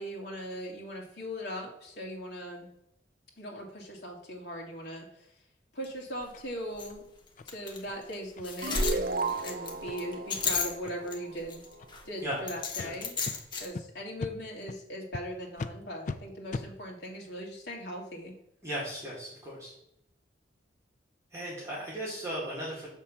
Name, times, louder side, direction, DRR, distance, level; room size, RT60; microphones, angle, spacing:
voice 1, 0.0-2.7 3.4-5.3 5.7-7.0 7.5-11.6 12.1-13.2 13.6-18.3, equal, 70° left, -1 dB, 1.9 m, -39 dB
sound 1, 5.8-5.9 6.2-6.3 6.8-6.9 7.5-7.8 8.1-8.2 8.4-11.1 11.5-12.0 12.5-13.7, left 4 dB, 25° left, 0.9 m, -32 dB
sound 2, 6.3-6.5 6.9-7.0 7.4-7.5 7.9-8.0 8.4-8.5 8.8-9.0 9.3-9.5 9.9-10.0 10.3-10.5 10.8-11.2 11.7-11.9 12.3-12.4 12.8-12.9 13.2-13.4 13.7-13.8 14.2-14.3 14.7-14.8 15.1-15.2 15.6-15.7 16.0-16.2 16.5-16.7, left 3 dB, 45° left, 0.3 m, -39 dB
sound 3, 8.6-11.8, right 3 dB, 50° right, 0.5 m, -35 dB
voice 2, 12.2-12.5 12.8-12.9 18.6-19.7 21.3-22.9, right 1 dB, 15° right, -6 dB, 1.8 m, -36 dB
6.9 x 3.6 x 5.6 m, 0.79 s
head